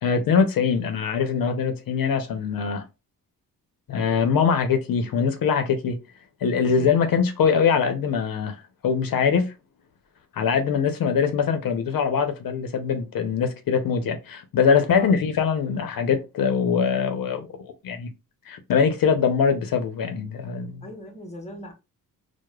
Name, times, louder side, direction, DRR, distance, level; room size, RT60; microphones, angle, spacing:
voice 1, 0.0-2.8 3.9-6.0 6.4-9.5 10.3-18.1 18.5-20.8, left 6 dB, 70° left, 0.6 m, -23 dB
voice 2, 20.8-21.7, left 1 dB, 20° left, 0.8 m, -39 dB
4.7 x 2.1 x 2.2 m
wide cardioid pair, 140°, 36 cm